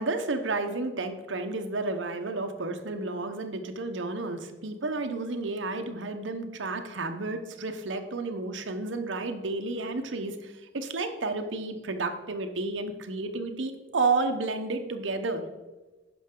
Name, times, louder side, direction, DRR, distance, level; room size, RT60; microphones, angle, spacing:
voice 1, 0.0-15.4, right 3 dB, 70° right, 6 dB, 0.9 m, -31 dB
9.9 x 6.0 x 3.7 m, 1.2 s
head